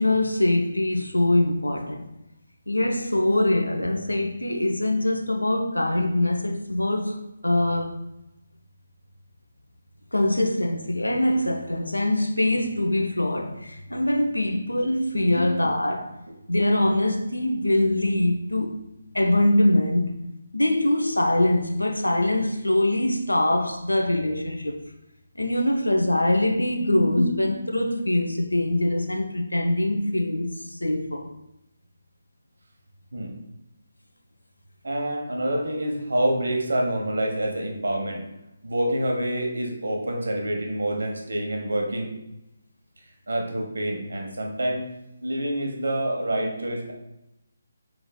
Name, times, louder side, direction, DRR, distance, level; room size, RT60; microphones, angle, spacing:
voice 1, 0.0-2.1 2.7-7.9 10.1-16.2 16.5-18.8 19.1-20.1 20.5-24.8 25.4-30.5 30.8-31.2, left 1 dB, 85° left, 0.6 m, -23 dB
voice 2, 15.3-15.7 26.9-27.3 33.1-33.3 34.8-38.2 38.6-42.1 43.3-44.9 45.2-46.9, right 1 dB, 65° right, 1.0 m, -27 dB
5.2 x 3.9 x 2.2 m
figure-of-eight pair, 145°, 0 cm